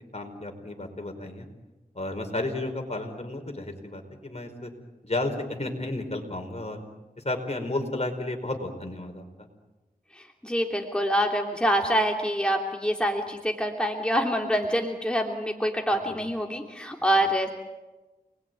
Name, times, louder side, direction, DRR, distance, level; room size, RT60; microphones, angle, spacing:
voice 1, 0.1-1.5 1.9-4.7 5.0-6.8 7.2-9.5 15.9-16.2, left 2 dB, 40° left, 5 dB, 4.9 m, -32 dB
voice 2, 10.1-17.5, equal, 5° left, 1 dB, 3.0 m, -26 dB
29.0 x 21.0 x 9.5 m, 1.1 s
wide cardioid pair, 45°, 16 cm